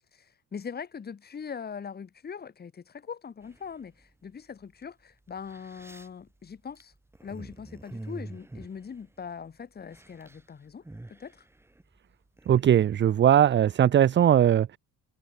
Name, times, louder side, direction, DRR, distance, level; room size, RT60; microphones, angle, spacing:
voice 1, 0.1-6.9 7.2-10.8 11.1-11.5, left 6 dB, 25° left, 3.6 m, -41 dB
sound 1, 3.4-4.1 4.8-4.9 5.3-9.5 9.8-10.4 10.7-12.8, right 2 dB, 5° right, 3.9 m, -46 dB
voice 2, 12.5-14.8, right 10 dB, 30° right, 0.7 m, -20 dB
cardioid pair, 175°, 39 cm